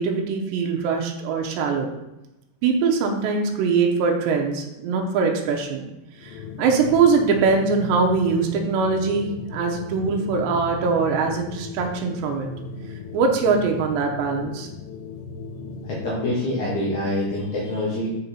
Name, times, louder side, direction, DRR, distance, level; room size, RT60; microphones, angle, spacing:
voice 1, 0.0-1.9 2.6-5.9 6.2-12.5 13.1-14.7, right 5 dB, 90° right, 2 dB, 3.1 m, -22 dB
sound 1, 6.1-16.4, left 4 dB, 80° left, 2.3 m, -37 dB
voice 2, 15.8-18.1, left 1 dB, 60° left, -6 dB, 2.2 m, -25 dB
7.0 x 5.4 x 4.3 m, 0.92 s
omnidirectional pair, 4.9 m